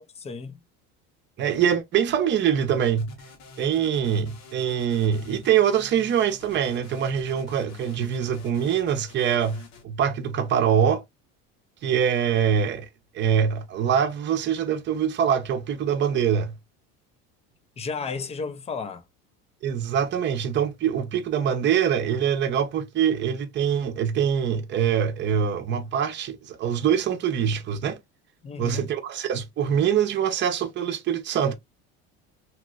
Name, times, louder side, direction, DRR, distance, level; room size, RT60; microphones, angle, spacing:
voice 1, 0.1-0.6 17.8-19.0 28.4-28.9, left 5 dB, 20° left, 0.5 m, -33 dB
voice 2, 1.4-3.1 3.6-11.0 11.8-12.9 13.1-16.5 19.6-28.0 28.6-31.5, right 8 dB, 40° right, 0.7 m, -24 dB
sound 1, 3.0-9.8, left 3 dB, 60° left, 1.3 m, -47 dB
2.9 x 2.9 x 2.4 m
supercardioid pair, 120°, 30 cm